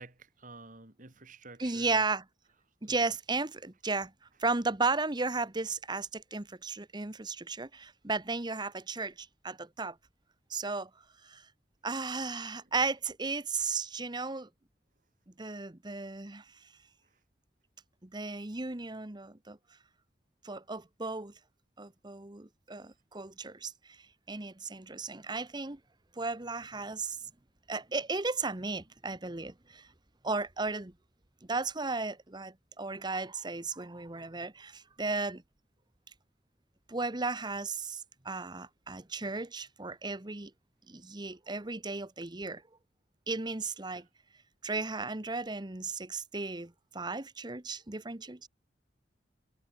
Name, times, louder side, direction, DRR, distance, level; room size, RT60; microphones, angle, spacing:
voice 1, 0.0-2.0 2.8-2.9 17.0-17.2 43.9-44.1, right 3 dB, 45° right, 3.0 m, -51 dB
voice 2, 1.6-2.2 2.8-4.1 4.4-10.0 10.5-10.9 11.2-11.5 11.8-14.5 15.4-16.4 18.0-19.6 20.4-21.3 21.8-24.0 24.3-25.8 26.2-27.2 27.7-29.9 30.2-30.9 31.5-35.4 36.9-40.5 40.9-42.6 43.3-44.1 44.6-48.5, right 3 dB, 25° right, 1.1 m, -35 dB
head